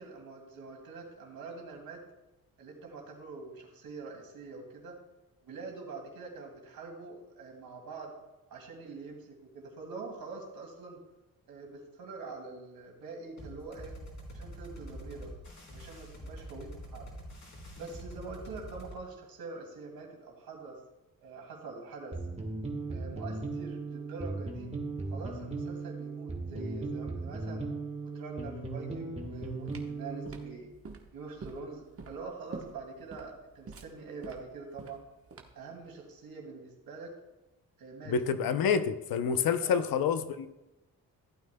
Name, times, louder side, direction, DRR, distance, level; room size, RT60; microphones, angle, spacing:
voice 1, 0.0-2.0 2.6-4.9 5.4-8.1 8.5-11.0 11.5-14.0 14.3-15.3 15.7-17.0 17.8-20.8 21.2-22.2 22.9-24.7 25.1-27.7 28.0-30.7 31.1-35.0 35.5-37.1 37.8-38.1 39.6-39.8, right 4 dB, 75° right, 1 dB, 2.5 m, -44 dB
sound 1, 13.4-19.0, equal, 50° left, 3.9 m, -46 dB
sound 2, 22.1-30.6, right 3 dB, 15° right, 1.5 m, -37 dB
sound 3, 29.2-35.7, right 4 dB, 40° right, 1.1 m, -47 dB
voice 2, 38.1-40.5, left 7 dB, 75° left, 11 dB, 0.7 m, -28 dB
15.0 x 8.9 x 2.2 m, 0.98 s
cardioid pair, 90°, 36 cm